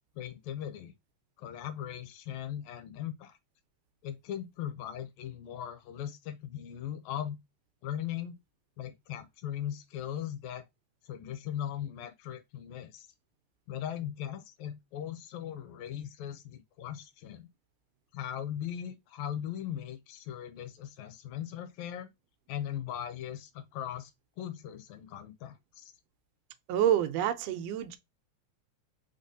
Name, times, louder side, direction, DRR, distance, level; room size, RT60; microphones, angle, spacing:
voice 1, 0.2-0.9 1.4-3.4 4.0-7.4 7.8-8.3 8.8-10.7 11.0-13.1 13.7-17.5 18.1-22.1 22.5-24.1 24.4-25.8, left 10 dB, 80° left, 2.1 m, -39 dB
voice 2, 26.7-28.0, right 10 dB, 75° right, 1.6 m, -27 dB
4.2 x 3.9 x 2.6 m
omnidirectional pair, 3.3 m